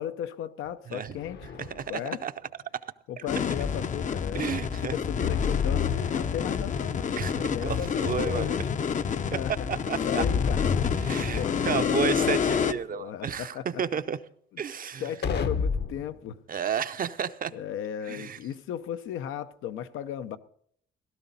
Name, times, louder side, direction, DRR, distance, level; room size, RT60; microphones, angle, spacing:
voice 1, 0.0-2.2 3.1-4.4 4.8-7.1 7.4-8.8 9.3-9.5 10.1-10.6 11.3-13.8 14.5-14.6 15.0-16.4 17.5-20.4, left 10 dB, 85° left, 0.7 m, -36 dB
sound 1, 1.2-1.9 5.2-6.9 10.2-11.9 15.2-16.1, left 6 dB, 60° left, 0.9 m, -30 dB
voice 2, 1.6-1.9 2.2-2.3 4.3-4.9 7.2-8.5 9.9-10.2 11.0-14.2 14.6-15.1 16.5-17.5 18.1-18.4, right 7 dB, 45° right, 0.7 m, -32 dB
sound 2, 3.3-12.7, left 6 dB, 40° left, 0.6 m, -28 dB
16.5 x 12.5 x 4.1 m
cardioid pair, 90°, 20 cm